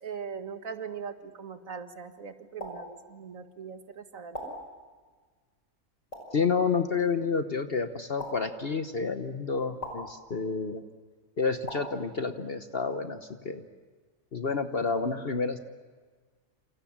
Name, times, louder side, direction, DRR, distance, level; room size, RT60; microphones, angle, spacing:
voice 1, 0.0-4.6 6.4-6.6, right 6 dB, 70° right, 8 dB, 2.1 m, -40 dB
sound 1, 2.6-2.7 4.3-4.5 6.1-6.2 8.2-8.3 9.8-10.0 11.7-11.8, equal, 65° left, 6.0 m, -37 dB
voice 2, 6.3-10.8 11.4-13.6 14.3-15.6, left 5 dB, 45° left, 8 dB, 1.2 m, -29 dB
28.5 x 28.0 x 7.4 m, 1.4 s
omnidirectional pair, 1.5 m